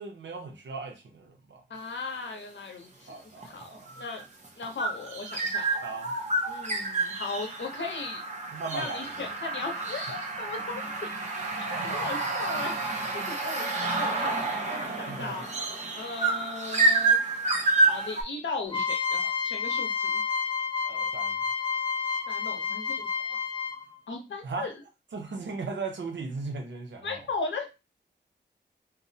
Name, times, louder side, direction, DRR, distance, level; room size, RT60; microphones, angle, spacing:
voice 1, 0.0-1.6 3.1-3.9 5.8-6.1 8.5-9.0 11.7-12.0 15.1-15.3 20.8-21.4 24.4-24.7 25.1-27.2, right 4 dB, 75° right, 0.6 m, -37 dB
voice 2, 1.7-4.3 4.6-5.8 6.5-8.2 8.7-11.1 11.7-15.5 15.9-17.2 17.8-20.2 22.3-23.4 24.1-24.8 27.0-27.7, left 3 dB, 85° left, 0.7 m, -37 dB
sound 1, 2.0-2.3 3.4-18.2, right 3 dB, 40° right, 0.6 m, -29 dB
sound 2, 18.7-24.0, left 6 dB, 25° left, 0.5 m, -30 dB
2.4 x 2.0 x 2.7 m
wide cardioid pair, 115°, 19 cm